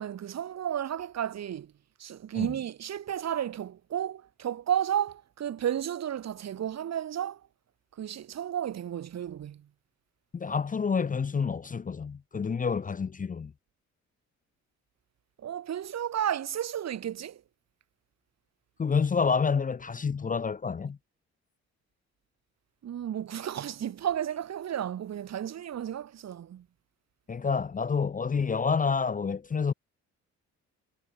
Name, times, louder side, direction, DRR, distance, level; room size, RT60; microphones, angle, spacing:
voice 1, 0.0-1.7 2.0-7.4 8.0-9.7 15.4-17.4 22.8-26.7, right 10 dB, 60° right, 2.3 m, -33 dB
voice 2, 10.3-13.5 18.8-21.0 27.3-29.7, left 5 dB, 25° left, 0.7 m, -28 dB
cardioid pair, 90°, 30 cm